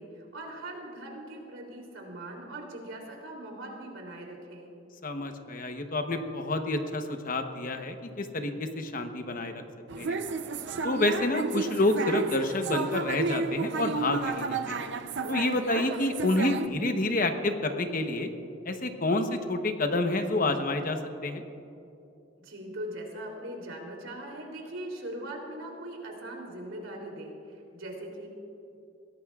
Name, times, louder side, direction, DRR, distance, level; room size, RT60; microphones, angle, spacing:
voice 1, 0.0-4.7 22.4-28.3, right 1 dB, 90° right, 0 dB, 3.2 m, -40 dB
voice 2, 5.0-9.6 10.0-10.2 10.8-14.9 15.3-18.3 18.6-21.5, left 2 dB, 45° left, 6 dB, 1.0 m, -28 dB
sound 1, 9.9-16.7, right 4 dB, 60° right, 0.6 m, -32 dB
22.0 x 17.0 x 2.4 m, 2.8 s
head